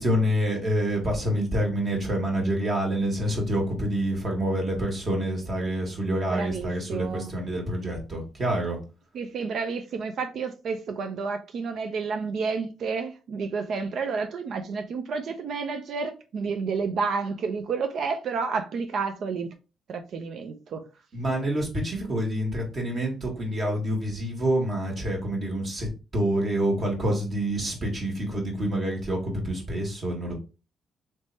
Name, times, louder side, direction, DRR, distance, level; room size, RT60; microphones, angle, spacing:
voice 1, 0.0-8.8 21.1-25.9 26.1-30.3, right 1 dB, 45° right, 1.7 m, -27 dB
voice 2, 6.3-7.3 9.1-19.5 19.9-20.8, right 5 dB, 65° right, 0.5 m, -30 dB
3.3 x 3.2 x 2.7 m
cardioid pair, 90°, 0 cm